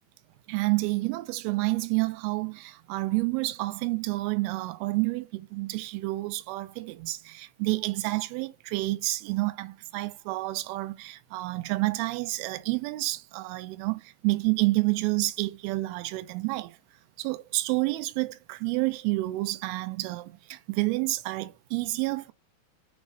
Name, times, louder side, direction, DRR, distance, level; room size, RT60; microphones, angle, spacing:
voice 1, 0.5-16.8 17.2-22.3, right 21 dB, 85° right, 2.2 m, -29 dB
6.2 x 3.2 x 2.6 m
omnidirectional pair, 4.9 m